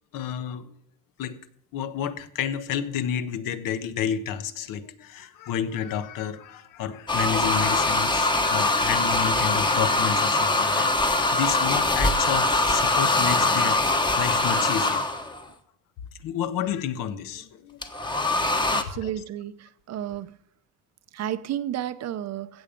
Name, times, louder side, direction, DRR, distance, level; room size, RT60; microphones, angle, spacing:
voice 1, 0.1-0.8 1.2-1.4 1.7-15.1 16.2-17.8 18.1-18.2 19.0-19.1, left 9 dB, 75° left, 1.2 m, -30 dB
sound 1, 7.1-15.4 17.8-18.8, left 2 dB, 15° left, 1.1 m, -23 dB
voice 2, 18.7-20.4 21.1-22.6, right 11 dB, 50° right, 0.8 m, -32 dB
16.0 x 7.3 x 5.2 m
cardioid pair, 155°, 33 cm